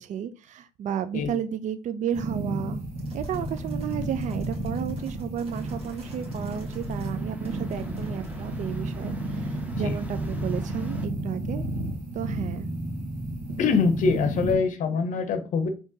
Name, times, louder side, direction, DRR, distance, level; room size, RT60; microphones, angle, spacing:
voice 1, 0.0-2.8 3.1-11.7 12.1-12.7, right 8 dB, 60° right, 0.4 m, -32 dB
sound 1, 2.1-14.5, right 1 dB, 90° right, 1.1 m, -32 dB
sound 2, 3.0-7.2 7.4-8.8, right 1 dB, 45° right, 1.4 m, -43 dB
sound 3, 5.5-11.1, equal, 10° right, 0.8 m, -43 dB
voice 2, 13.6-15.7, left 5 dB, 65° left, 0.6 m, -24 dB
3.6 x 2.8 x 2.7 m
supercardioid pair, 70°, 14 cm